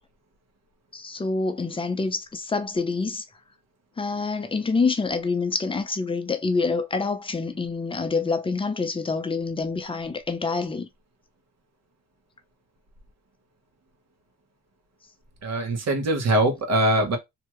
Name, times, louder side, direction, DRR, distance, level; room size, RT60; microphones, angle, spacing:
voice 1, 0.9-3.2 4.0-10.9, left 4 dB, 15° left, 0.6 m, -26 dB
voice 2, 15.4-17.2, right 1 dB, 60° right, 1.2 m, -22 dB
2.8 x 2.4 x 3.0 m
cardioid pair, 90°, 30 cm